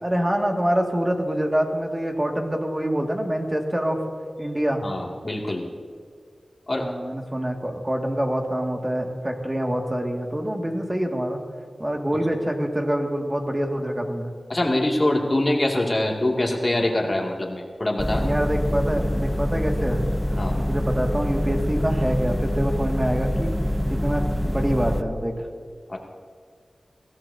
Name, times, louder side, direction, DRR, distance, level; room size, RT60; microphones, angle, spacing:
voice 1, 0.0-4.0 4.4-4.9 6.8-11.4 11.8-14.3 18.1-20.0 20.5-23.5 23.9-25.5, right 1 dB, 20° right, 1 dB, 2.2 m, -25 dB
voice 2, 4.8-5.7 6.7-6.9 14.5-18.2 20.4-20.6 25.9-26.0, left 1 dB, 40° left, 0 dB, 2.5 m, -24 dB
sound 1, 18.0-25.0, equal, ahead, 0.8 m, -25 dB
22.0 x 16.0 x 2.8 m, 2.1 s
cardioid pair, 50°, 0 cm